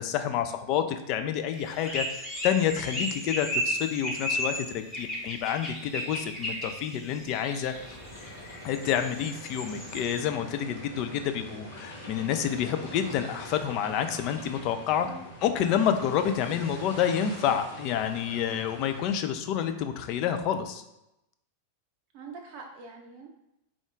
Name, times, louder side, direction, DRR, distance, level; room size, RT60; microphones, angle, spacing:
voice 1, 0.0-8.0 8.6-15.1 15.4-20.8, left 9 dB, 40° left, 8 dB, 0.3 m, -28 dB
sound 1, 1.5-10.2, equal, 15° left, 0.9 m, -34 dB
sound 2, 7.7-19.0, equal, 75° left, 1.2 m, -44 dB
voice 2, 22.1-23.3, right 4 dB, 45° right, 0 dB, 0.5 m, -44 dB
3.5 x 2.4 x 3.7 m, 0.86 s
figure-of-eight pair, 90°, 0 cm